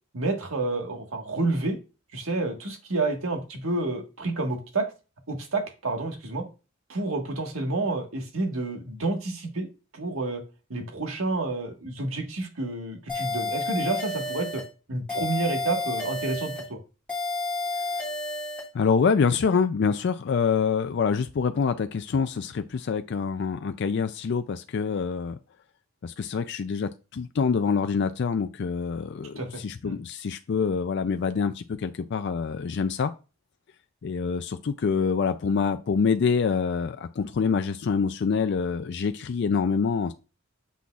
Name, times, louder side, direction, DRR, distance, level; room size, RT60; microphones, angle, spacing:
voice 1, 0.1-1.8 2.1-4.9 5.3-6.5 6.9-9.7 9.9-10.4 10.7-14.6 14.9-16.8 29.4-30.0, right 2 dB, 80° right, 3 dB, 1.5 m, -29 dB
sound 1, 13.1-14.7 15.1-16.7 17.1-18.7, left 2 dB, 5° left, 2.8 m, -31 dB
voice 2, 18.7-25.4 26.0-33.1 34.0-40.1, left 5 dB, 55° left, 9 dB, 0.4 m, -26 dB
7.0 x 6.1 x 2.4 m, 0.31 s
head